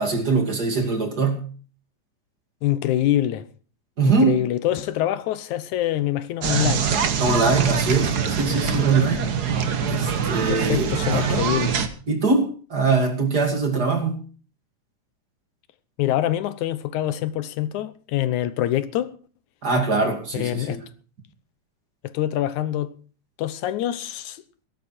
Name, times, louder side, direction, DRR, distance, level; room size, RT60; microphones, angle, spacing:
voice 1, 0.0-1.4 4.0-4.4 7.2-9.2 9.9-11.4 12.1-14.1 19.6-20.8, right 4 dB, 35° right, 2.7 m, -22 dB
voice 2, 2.6-3.5 4.1-6.9 10.5-11.8 16.0-19.2 20.3-20.8 22.0-22.9 23.4-24.4, left 12 dB, 75° left, 2.3 m, -25 dB
sound 1, 6.4-11.9, right 7 dB, 60° right, 1.0 m, -24 dB
16.5 x 13.0 x 4.4 m
omnidirectional pair, 3.5 m